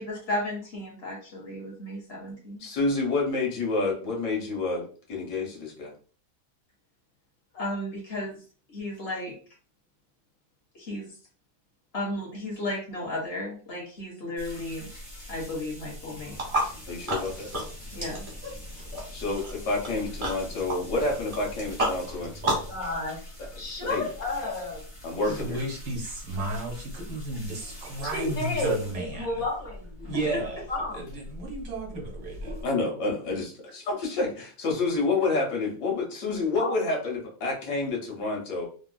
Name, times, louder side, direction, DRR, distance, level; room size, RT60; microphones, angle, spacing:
voice 1, 0.0-2.6 7.5-8.4 8.7-9.4 10.7-11.2 11.9-14.9 15.3-16.4 17.9-18.3 30.1-30.4, left 1 dB, 40° left, -3 dB, 1.4 m, -34 dB
voice 2, 2.6-5.9 16.9-17.5 19.1-22.3 23.8-24.1 25.0-25.6 32.6-38.7, left 3 dB, 75° left, 0 dB, 1.6 m, -28 dB
sound 1, 14.4-32.6, left 1 dB, 20° left, 1.1 m, -43 dB
sound 2, 16.3-22.8, right 1 dB, 25° right, 0.9 m, -33 dB
voice 3, 22.7-23.2 23.6-24.8 28.1-31.2 36.6-36.7, left 2 dB, 60° left, -1 dB, 1.4 m, -32 dB
voice 4, 25.3-29.4 30.0-30.6 30.9-32.6, right 2 dB, 70° right, -1 dB, 1.5 m, -33 dB
3.7 x 2.3 x 2.2 m, 0.41 s
omnidirectional pair, 1.8 m